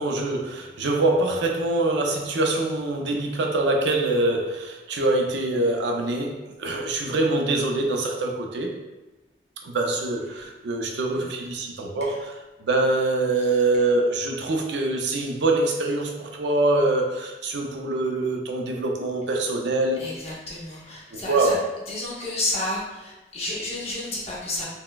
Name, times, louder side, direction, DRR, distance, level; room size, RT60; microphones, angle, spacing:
voice 1, 0.0-8.8 9.6-12.3 12.6-20.1 21.1-21.6, right 2 dB, 70° right, 1 dB, 0.4 m, -24 dB
voice 2, 20.0-21.5 21.9-24.6, left 1 dB, 35° left, -6 dB, 0.8 m, -31 dB
3.9 x 2.1 x 2.2 m, 1.1 s
head